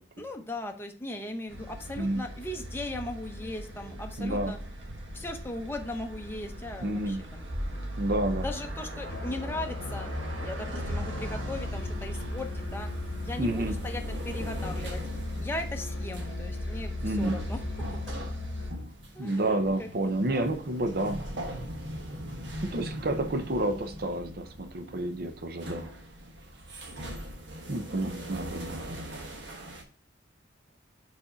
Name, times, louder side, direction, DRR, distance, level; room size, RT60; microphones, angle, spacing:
voice 1, 0.2-4.6 5.1-7.5 8.4-10.1 10.4-12.9 13.2-15.0 15.4-17.6 19.1-19.9 20.3-20.5, left 1 dB, 10° left, 0.7 m, -38 dB
sound 1, 1.5-18.7, equal, 90° right, 1.4 m, -39 dB
voice 2, 4.2-4.6 6.8-7.3 8.0-8.5 13.4-13.8 17.0-17.4 19.2-21.2 22.6-26.0 27.7-29.0, right 1 dB, 55° right, 0.6 m, -30 dB
Musical instrument, 9.1-18.9, left 3 dB, 60° left, 0.5 m, -37 dB
sound 2, 11.2-29.8, equal, 75° right, 1.2 m, -41 dB
4.8 x 4.2 x 4.9 m
head